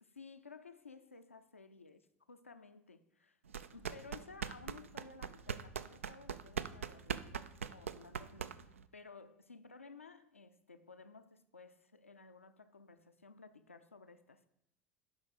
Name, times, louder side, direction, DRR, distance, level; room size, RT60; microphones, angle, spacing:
voice 1, 0.0-3.4 3.7-14.5, left 4 dB, 90° left, 0.5 m, -56 dB
sound 1, 3.5-8.8, right 7 dB, 80° right, 0.4 m, -42 dB
12.0 x 5.1 x 4.9 m
figure-of-eight pair, 70°, 7 cm